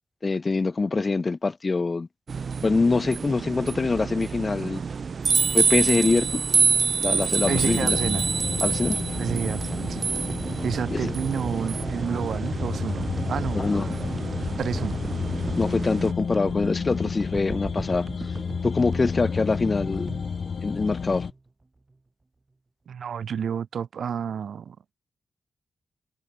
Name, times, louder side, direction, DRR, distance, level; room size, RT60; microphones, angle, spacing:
voice 1, 0.2-2.1 2.6-4.8 5.5-6.4 7.0-8.0 8.6-9.0 10.9-11.1 13.5-13.9 15.6-18.3 18.6-20.1 20.6-21.3, left 3 dB, 30° left, 0.5 m, -24 dB
sound 1, 2.3-16.1, right 5 dB, 45° right, 0.3 m, -27 dB
sound 2, 7.4-21.3, left 5 dB, 50° left, 1.9 m, -31 dB
voice 2, 7.5-8.3 9.2-10.1 10.6-13.7 14.6-15.0 22.9-24.8, right 7 dB, 70° right, 3.0 m, -30 dB
sound 3, 9.1-21.5, right 2 dB, 20° right, 3.3 m, -39 dB
wide cardioid pair, 145°, 0 cm